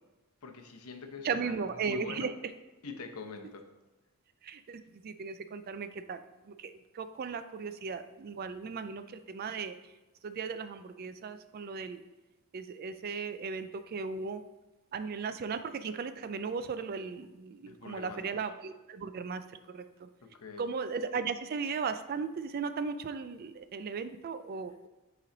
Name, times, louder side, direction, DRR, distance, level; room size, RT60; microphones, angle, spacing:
voice 1, 0.4-2.3 2.8-3.6 17.7-18.5 20.2-20.7 24.5-24.8, left 4 dB, 85° left, 5 dB, 0.8 m, -45 dB
voice 2, 1.2-2.3 4.4-6.2 6.5-9.7 10.2-12.0 12.5-14.4 14.9-19.4 19.7-19.8 20.6-24.9, right 5 dB, 45° right, 11 dB, 0.3 m, -36 dB
8.5 x 3.1 x 3.9 m, 1.1 s
head